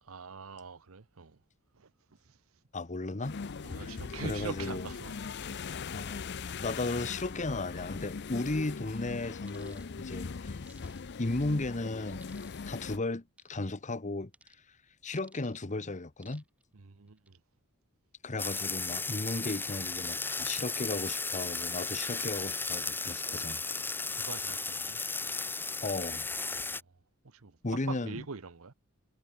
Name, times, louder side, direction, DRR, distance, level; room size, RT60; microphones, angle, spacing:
voice 1, 0.0-1.4 1.7-2.4 3.6-5.5 16.7-17.4 23.2-25.0 26.4-26.8 27.2-28.7, right 4 dB, 70° right, 0.9 m, -45 dB
voice 2, 2.7-3.4 3.8-3.9 4.2-4.9 5.9-6.2 6.6-10.6 11.2-12.3 12.7-13.2 13.5-14.3 15.0-16.4 18.2-23.6 25.8-26.3 27.6-28.2, left 2 dB, 35° left, 1.0 m, -35 dB
sound 1, 3.2-13.0, left 5 dB, 50° left, 0.6 m, -40 dB
sound 2, 9.5-9.9 10.7-11.3 12.2-12.7 13.4-13.7 14.3-14.6 15.1-15.6 16.2-16.6 17.1-17.3, right 2 dB, 5° right, 3.2 m, -58 dB
sound 3, 18.4-26.8, left 3 dB, 10° left, 0.9 m, -35 dB
head